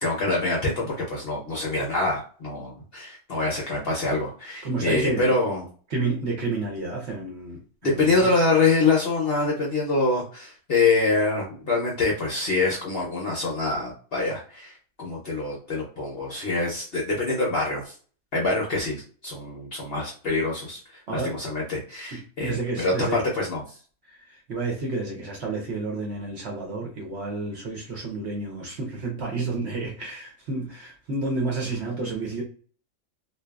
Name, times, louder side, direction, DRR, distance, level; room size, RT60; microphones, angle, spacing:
voice 1, 0.0-5.7 7.8-17.9 18.3-20.8 21.1-23.6, left 3 dB, 55° left, 0.7 m, -25 dB
voice 2, 4.6-5.3 5.9-8.3 21.1-21.3 22.1-23.2 24.1-32.4, right 3 dB, 55° right, 0.9 m, -30 dB
2.6 x 2.4 x 2.3 m
omnidirectional pair, 1.6 m